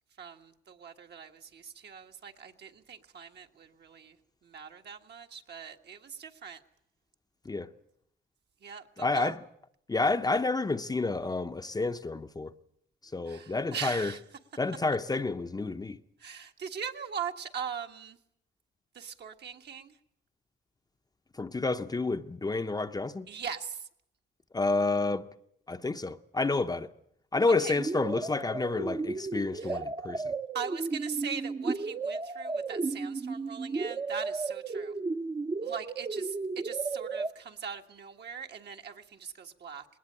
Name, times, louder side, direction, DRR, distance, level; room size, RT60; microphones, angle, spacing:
voice 1, 0.2-4.2 4.4-6.6 8.6-9.4 13.3-14.2 16.2-18.2 18.9-20.0 23.3-23.9 27.6-27.8 29.6-29.8 30.5-34.9 35.6-39.9, right 7 dB, 60° right, 1.7 m, -40 dB
voice 2, 9.0-9.4 9.9-12.5 13.1-14.1 14.6-16.0 21.4-23.3 24.5-25.3 25.7-26.9 27.3-30.3, left 3 dB, 20° left, 0.8 m, -29 dB
sound 1, 27.8-37.3, right 3 dB, 25° right, 0.8 m, -34 dB
19.5 x 19.0 x 8.7 m
cardioid pair, 90°, 20 cm